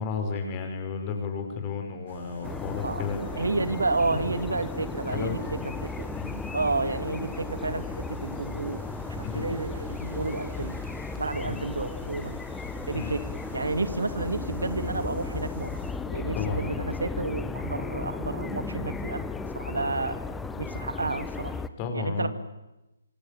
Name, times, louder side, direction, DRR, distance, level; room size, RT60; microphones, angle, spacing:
voice 1, 0.0-3.2 4.0-4.2 5.1-5.8 6.1-6.4 9.2-9.5 11.4-11.6 12.9-13.1 16.4-16.6 19.8-19.9 21.8-22.3, left 5 dB, 25° left, 5 dB, 5.8 m, -33 dB
sound 1, 2.1-15.9, right 5 dB, 45° right, 7.1 m, -47 dB
sound 2, 2.4-21.7, left 4 dB, 5° left, 1.2 m, -35 dB
voice 2, 2.7-3.0 3.3-5.4 5.8-6.1 6.5-10.8 11.2-12.4 12.9-13.2 13.5-15.7 16.1-19.2 19.5-20.1 20.6-21.6 21.9-22.3, right 3 dB, 70° right, 11 dB, 2.3 m, -31 dB
26.5 x 25.5 x 8.8 m, 0.97 s
figure-of-eight pair, 135°, 0 cm